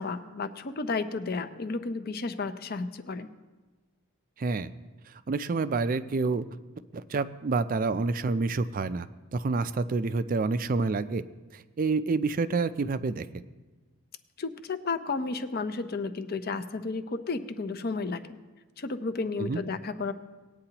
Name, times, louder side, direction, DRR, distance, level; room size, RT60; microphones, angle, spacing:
voice 1, 0.0-3.3 14.4-18.4 18.8-20.1, left 4 dB, 45° left, 10 dB, 0.6 m, -32 dB
voice 2, 4.4-4.7 5.3-6.4 6.9-9.1 9.3-11.2 11.5-13.3 19.4-19.6, right 3 dB, 40° right, 13 dB, 0.4 m, -28 dB
19.0 x 8.9 x 2.9 m, 1.2 s
head